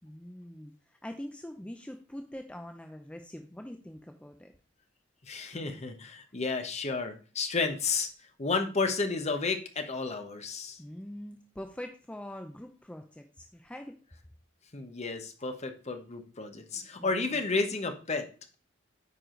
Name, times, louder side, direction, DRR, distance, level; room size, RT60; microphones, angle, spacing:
voice 1, 0.0-4.5 10.8-14.0 17.0-17.4, left 1 dB, 5° left, 5 dB, 0.6 m, -44 dB
voice 2, 5.2-8.1 8.4-10.8 14.7-18.3, left 4 dB, 35° left, 7 dB, 1.1 m, -32 dB
9.4 x 4.8 x 3.8 m, 0.36 s
head